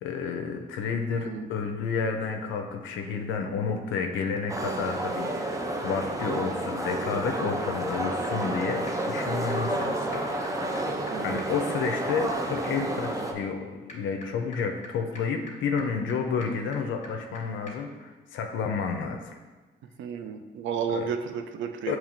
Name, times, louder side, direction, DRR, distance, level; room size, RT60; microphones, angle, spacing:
voice 1, 0.0-10.4 10.8-10.9 11.2-19.4 20.9-21.1 21.9-22.0, left 5 dB, 75° left, 4 dB, 0.5 m, -31 dB
voice 2, 1.1-1.5 11.1-11.4 20.0-22.0, right 7 dB, 75° right, 7 dB, 0.5 m, -32 dB
sound 1, 4.5-13.3, right 1 dB, 15° right, 0.5 m, -30 dB
sound 2, 7.6-7.7 7.9-8.0 8.2-8.3 8.6-8.7 8.9-9.0 9.2-9.3 9.5-9.6 9.8-9.9 10.1-17.4 17.7-17.8, left 2 dB, 40° left, 1.2 m, -48 dB
7.0 x 3.0 x 2.5 m, 1.3 s
cardioid pair, 90°, 20 cm